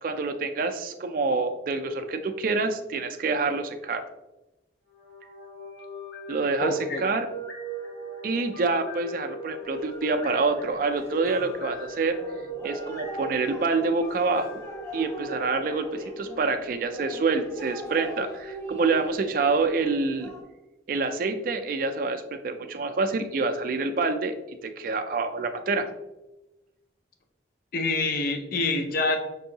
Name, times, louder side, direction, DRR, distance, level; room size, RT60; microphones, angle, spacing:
voice 1, 0.0-4.0 6.3-7.3 8.2-12.2 12.6-14.6 14.9-20.3 20.9-24.3 24.6-25.9, right 3 dB, 45° right, 7 dB, 0.3 m, -27 dB
sound 1, 4.9-17.0, right 3 dB, 75° left, 1.1 m, -40 dB
voice 2, 6.6-7.0 27.7-29.2, left 3 dB, 50° left, 4 dB, 0.5 m, -26 dB
sound 2, 9.6-20.4, right 1 dB, 15° left, 0.7 m, -41 dB
5.4 x 2.7 x 2.7 m, 1.0 s
head